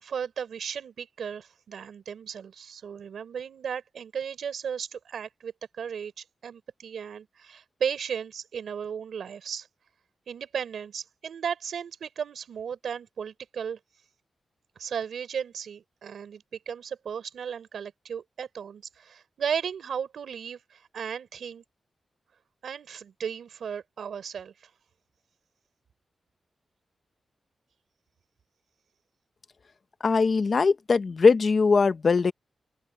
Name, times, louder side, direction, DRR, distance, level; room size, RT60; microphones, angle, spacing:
voice 1, 0.0-9.7 10.3-13.8 14.8-21.6 22.6-24.5, right 7 dB, 75° right, 3.8 m, -35 dB
voice 2, 30.0-32.3, left 4 dB, 40° left, 0.9 m, -21 dB
open air
wide cardioid pair, 180°, 0 cm